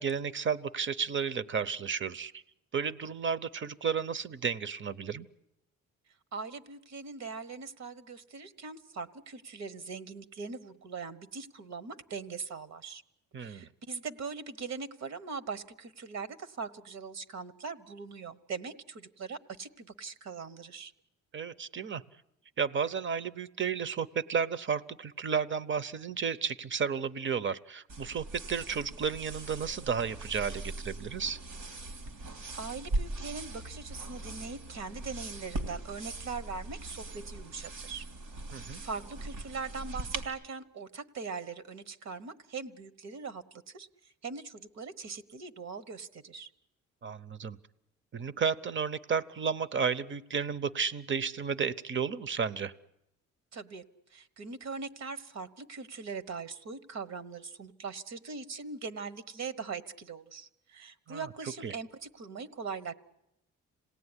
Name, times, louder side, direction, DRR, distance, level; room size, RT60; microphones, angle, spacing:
voice 1, 0.0-2.4 2.7-5.3 13.3-13.7 21.3-22.0 22.6-31.4 38.5-38.8 47.0-47.6 48.1-52.7 61.1-61.3 61.6-61.7, right 6 dB, 40° right, 17 dB, 0.9 m, -32 dB
voice 2, 6.3-13.0 13.4-20.9 32.5-38.1 38.8-46.5 53.5-53.8 54.1-62.9, right 5 dB, 60° right, 14 dB, 1.3 m, -41 dB
sound 1, 27.9-40.2, right 2 dB, 85° right, 2.9 m, -40 dB
27.0 x 18.0 x 9.9 m, 0.86 s
cardioid pair, 90°, 30 cm